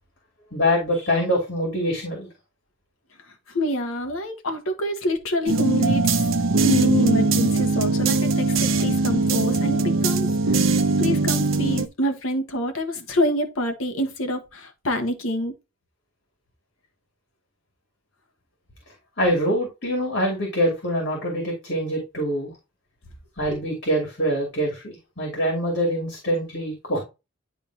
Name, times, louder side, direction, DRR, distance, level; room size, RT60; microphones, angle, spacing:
voice 1, 0.5-2.3 19.2-22.5 23.4-27.0, equal, 55° left, 2.7 m, -24 dB
voice 2, 3.5-6.2 6.6-10.6 11.0-15.5, equal, 85° left, 1.3 m, -26 dB
sound 1, 5.5-11.9, right 3 dB, 80° right, 0.8 m, -21 dB
10.5 x 3.6 x 2.8 m
head